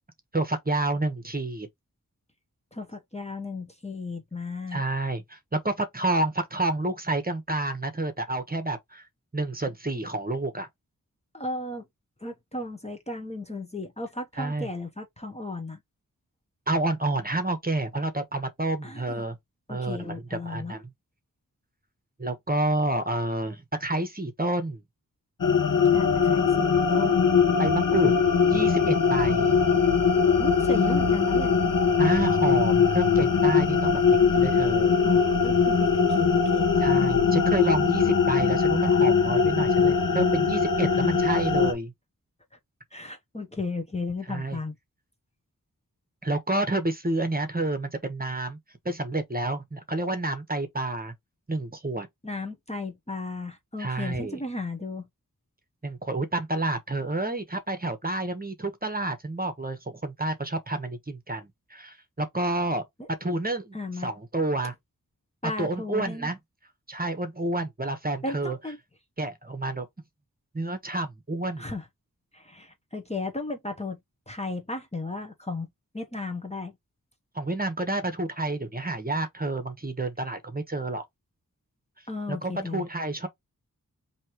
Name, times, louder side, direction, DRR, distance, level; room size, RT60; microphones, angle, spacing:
voice 1, 0.3-1.7 4.7-9.0 9.3-10.7 14.4-14.7 16.7-19.4 19.7-20.8 22.2-24.8 27.6-28.1 28.5-29.5 32.0-35.0 36.8-41.9 44.3-44.6 46.2-48.6 48.8-51.1 51.5-52.1 53.8-54.4 55.8-62.8 63.2-64.7 65.6-66.4 66.9-68.6 69.2-69.9 70.5-71.7 77.3-81.0 82.3-83.3, right 2 dB, 25° right, 1.1 m, -29 dB
voice 2, 2.7-4.8 11.3-11.8 12.2-15.8 18.8-19.2 19.7-20.8 25.9-27.3 30.4-31.5 35.0-36.9 40.9-41.1 42.9-44.7 52.2-55.1 63.0-63.1 63.7-64.1 65.4-66.3 68.2-68.8 71.6-71.8 72.3-74.0 74.3-75.7 75.9-76.7 82.1-82.8, left 2 dB, 20° left, 0.9 m, -34 dB
sound 1, 25.4-41.7, left 6 dB, 70° left, 0.9 m, -21 dB
3.1 x 2.9 x 4.4 m
wide cardioid pair, 75°, 33 cm